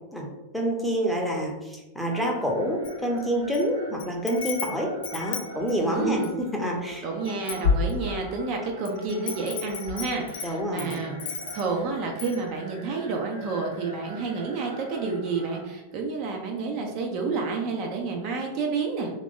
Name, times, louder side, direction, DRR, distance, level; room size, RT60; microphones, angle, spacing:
voice 1, 0.5-7.1 10.4-11.2, equal, ahead, -1 dB, 0.7 m, -27 dB
sound 1, 2.1-15.6, equal, 75° right, 0.8 m, -44 dB
Wind chime, 2.8-3.6 4.0-6.4 6.9-7.0 7.2-8.4 8.8-11.8 12.2-12.4, left 6 dB, 55° left, 0.5 m, -31 dB
voice 2, 5.8-6.3 7.0-19.1, right 4 dB, 40° right, 1 dB, 0.5 m, -30 dB
2.9 x 2.5 x 3.5 m, 1.1 s
figure-of-eight pair, 90°, 0 cm